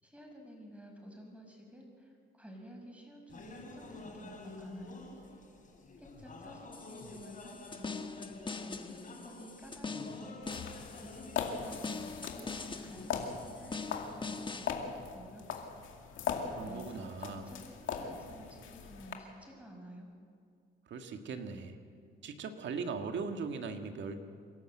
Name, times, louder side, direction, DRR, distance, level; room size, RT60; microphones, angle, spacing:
voice 1, 0.0-5.0 6.0-8.2 8.6-10.4 11.0-15.4 16.6-20.1, equal, 5° right, 1 dB, 6.4 m, -52 dB
sound 1, 3.3-13.8, left 2 dB, 40° left, 4.9 m, -49 dB
sound 2, 6.7-14.7, left 4 dB, 25° left, 1.2 m, -43 dB
sound 3, 10.4-19.1, left 6 dB, 80° left, 2.2 m, -40 dB
voice 2, 16.5-17.5 20.9-21.8 22.2-24.2, right 5 dB, 65° right, 6 dB, 1.8 m, -39 dB
28.0 x 12.0 x 7.9 m, 2.2 s
cardioid pair, 90°, 20 cm